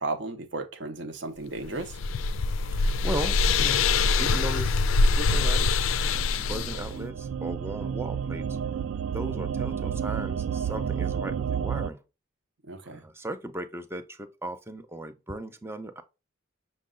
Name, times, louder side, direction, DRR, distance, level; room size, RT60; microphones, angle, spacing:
voice 1, 0.0-2.0 12.7-13.0, right 3 dB, 60° right, 0.7 m, -34 dB
sound 1, 1.6-6.9, left 4 dB, 75° left, 0.4 m, -24 dB
voice 2, 2.8-4.8 5.1-8.5 9.1-12.0 12.8-16.0, right 1 dB, 10° right, 0.4 m, -37 dB
sound 2, 6.0-11.9, right 7 dB, 85° right, 0.3 m, -31 dB
6.3 x 2.2 x 3.6 m
head